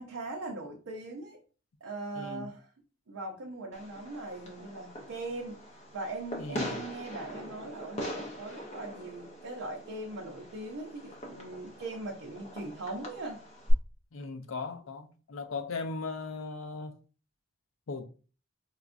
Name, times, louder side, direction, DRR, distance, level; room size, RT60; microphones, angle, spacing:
voice 1, 0.0-1.4 1.8-2.7 3.1-13.4, right 2 dB, 75° right, 0.6 m, -40 dB
voice 2, 2.2-2.5 6.4-6.8 14.1-16.9 17.9-18.1, left 4 dB, 75° left, 0.5 m, -38 dB
Fireworks, 3.7-13.7, equal, 35° left, 0.7 m, -41 dB
4.3 x 2.3 x 2.5 m
head